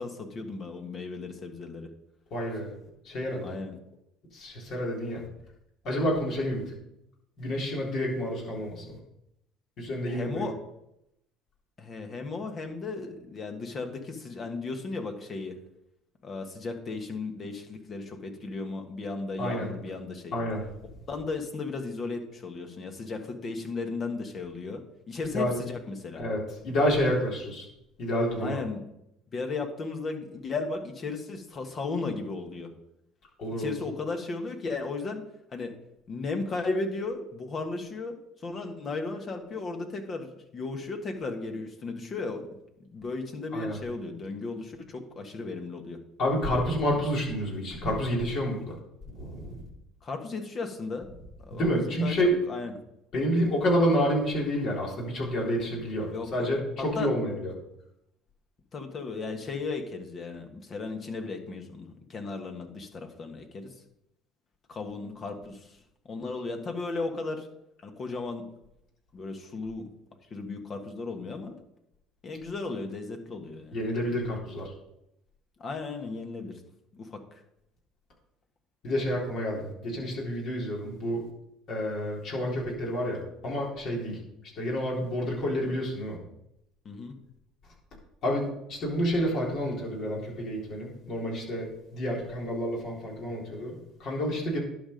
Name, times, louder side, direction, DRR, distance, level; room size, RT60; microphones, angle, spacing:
voice 1, 0.0-1.9 3.4-3.8 10.1-10.5 11.8-15.5 16.2-20.3 21.1-26.2 28.4-28.9 29.3-32.7 33.6-35.2 35.5-35.7 36.1-42.5 42.9-46.0 50.0-51.1 51.4-52.2 52.5-52.7 56.1-56.5 56.9-57.1 58.7-63.7 64.7-65.8 66.0-67.5 67.8-68.5 69.1-69.8 70.3-71.5 72.2-73.7 75.6-76.6 76.9-77.4 86.8-87.1, left 3 dB, 40° left, 5 dB, 1.6 m, -35 dB
voice 2, 2.3-2.8 3.0-3.6 4.3-5.2 5.8-6.7 7.4-8.9 9.8-10.5 19.4-19.7 20.3-20.6 25.3-25.6 26.2-27.7 28.0-28.6 33.4-33.7 43.5-43.8 46.2-48.8 49.1-49.6 51.5-52.4 53.1-57.5 73.7-74.7 78.8-81.2 81.7-84.2 84.6-86.2 88.2-94.6, equal, 55° left, -3 dB, 3.9 m, -29 dB
11.5 x 5.3 x 5.3 m, 0.82 s
hypercardioid pair, 65°, 0 cm